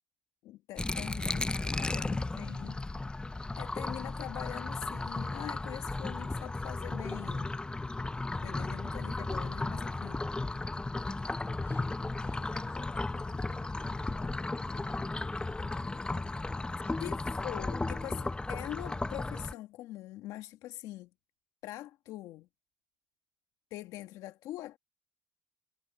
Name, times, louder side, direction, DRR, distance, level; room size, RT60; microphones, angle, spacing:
voice 1, 0.4-2.8 3.6-7.5 8.4-10.2 17.0-21.1 21.6-22.5 23.7-24.8, left 15 dB, 75° left, 1.3 m, -43 dB
sound 1, 0.8-19.5, left 2 dB, 15° left, 0.7 m, -35 dB
voice 2, 1.0-2.7 11.6-17.2, left 6 dB, 45° left, 2.3 m, -57 dB
supercardioid pair, 70°, 6 cm